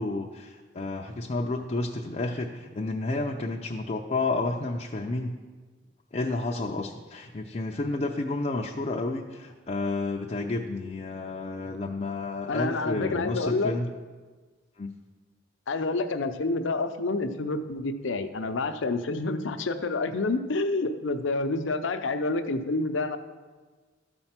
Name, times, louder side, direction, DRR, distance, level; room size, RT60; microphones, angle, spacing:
voice 1, 0.0-5.4 6.1-13.9 14.8-14.9, left 2 dB, 35° left, 0 dB, 0.5 m, -31 dB
voice 2, 12.5-13.7 15.7-23.2, left 3 dB, 75° left, 8 dB, 0.6 m, -28 dB
12.5 x 4.4 x 5.8 m, 1.4 s
head